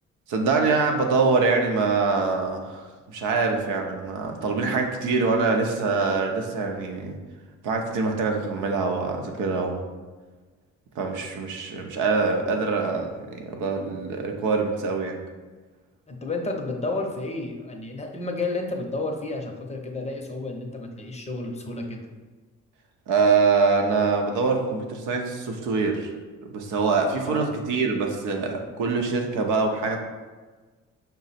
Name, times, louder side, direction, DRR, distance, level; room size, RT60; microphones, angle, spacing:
voice 1, 0.3-7.2 7.6-9.8 11.0-15.2 23.1-26.1 26.4-30.0, right 4 dB, 85° right, 3 dB, 0.7 m, -24 dB
voice 2, 16.1-22.0 27.1-27.5, left 2 dB, 20° left, 2 dB, 0.6 m, -31 dB
5.0 x 2.0 x 4.1 m, 1.3 s
cardioid pair, 90°, 30 cm